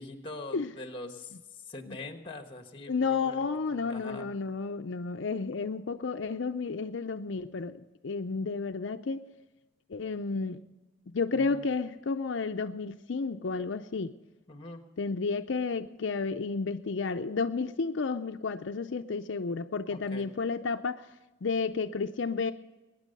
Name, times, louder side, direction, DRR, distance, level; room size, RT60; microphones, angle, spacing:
voice 1, 0.0-1.3 1.7-3.4 3.7-4.3 11.3-11.6 14.5-14.8 19.9-20.3, left 2 dB, 25° left, 1.4 m, -43 dB
voice 2, 2.9-9.2 9.9-10.6 11.1-14.1 15.0-21.1 21.4-22.5, left 4 dB, 70° left, 0.5 m, -32 dB
22.0 x 9.9 x 5.3 m
head